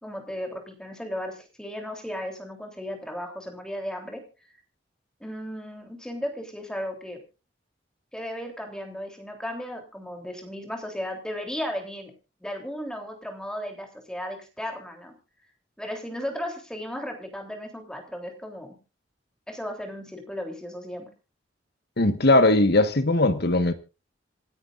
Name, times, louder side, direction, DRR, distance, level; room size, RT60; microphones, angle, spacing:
voice 1, 0.0-4.2 5.2-7.2 8.1-12.1 12.4-15.2 15.8-18.8 19.5-21.1, equal, 5° left, 3 dB, 3.4 m, -35 dB
voice 2, 22.0-23.7, left 2 dB, 60° left, 10 dB, 1.4 m, -19 dB
27.5 x 9.8 x 2.5 m, 0.32 s
head